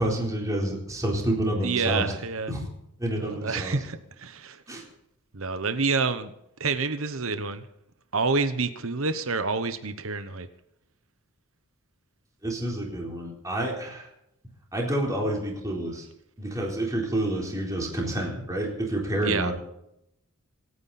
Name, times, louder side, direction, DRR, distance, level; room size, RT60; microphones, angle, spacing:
voice 1, 0.0-2.1 2.5-2.7 3.0-3.7 4.7-4.8 12.4-14.0 14.7-16.0 16.4-19.5, right 1 dB, 15° right, -2 dB, 4.0 m, -28 dB
voice 2, 1.6-2.5 3.2-4.6 5.3-6.3 6.6-7.6 8.1-10.5 19.2-19.5, right 4 dB, 65° right, 10 dB, 1.1 m, -28 dB
27.5 x 9.5 x 4.3 m, 0.80 s
head